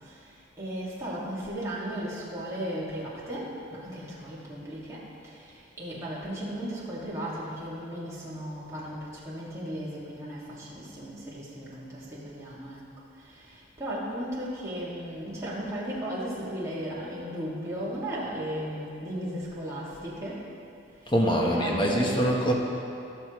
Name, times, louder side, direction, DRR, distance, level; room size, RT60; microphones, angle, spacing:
voice 1, 0.6-5.5 5.8-12.8 13.3-20.4 21.4-22.3, equal, 15° right, -8 dB, 2.2 m, -35 dB
voice 2, 21.1-22.5, equal, 25° left, -1 dB, 1.2 m, -24 dB
18.0 x 6.8 x 3.2 m, 2.6 s
head